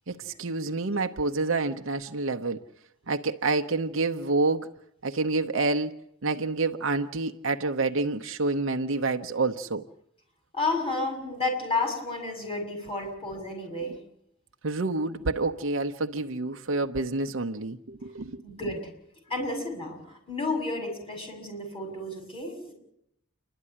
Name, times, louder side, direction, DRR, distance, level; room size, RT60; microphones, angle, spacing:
voice 1, 0.1-2.6 3.1-4.7 5.0-6.0 6.2-9.8 14.6-18.4, right 3 dB, 65° right, 0.8 m, -28 dB
voice 2, 10.5-14.0 18.4-18.9 19.3-22.7, left 2 dB, 25° left, 6.8 m, -31 dB
28.5 x 12.5 x 9.9 m
head